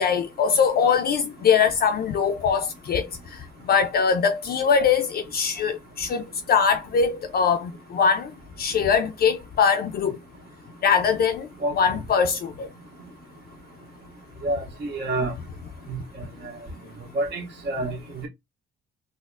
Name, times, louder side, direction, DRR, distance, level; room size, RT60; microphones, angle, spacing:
voice 1, 0.0-3.1 3.7-8.3 8.6-10.2 10.8-11.5 11.8-12.7, left 6 dB, 50° left, 0.4 m, -22 dB
voice 2, 14.4-15.3 15.9-16.0 17.1-18.0 18.2-18.3, right 2 dB, 65° right, 1.3 m, -27 dB
3.9 x 2.0 x 2.4 m
cardioid pair, 90°, 20 cm